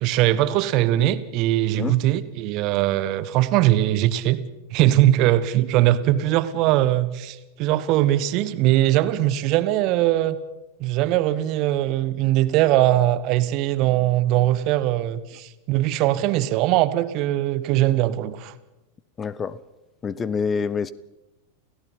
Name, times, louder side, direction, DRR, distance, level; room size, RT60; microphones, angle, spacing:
voice 1, 0.0-4.4 4.7-10.4 10.8-18.5, right 14 dB, 40° right, 1.2 m, -21 dB
voice 2, 19.2-19.6 20.0-20.9, left 5 dB, 20° left, 0.7 m, -26 dB
29.0 x 16.5 x 5.7 m
figure-of-eight pair, 90°, 0 cm